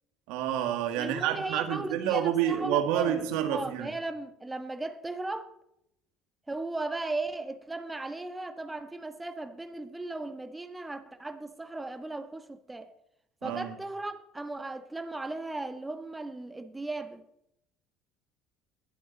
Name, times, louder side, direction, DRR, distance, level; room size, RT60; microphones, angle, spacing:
voice 1, 0.3-3.9 13.4-13.8, right 10 dB, 75° right, 2.0 m, -29 dB
voice 2, 1.0-3.2 3.5-5.5 6.5-12.9 13.4-17.2, right 2 dB, 15° right, 1.6 m, -36 dB
21.0 x 8.0 x 4.2 m
hypercardioid pair, 75°, 0 cm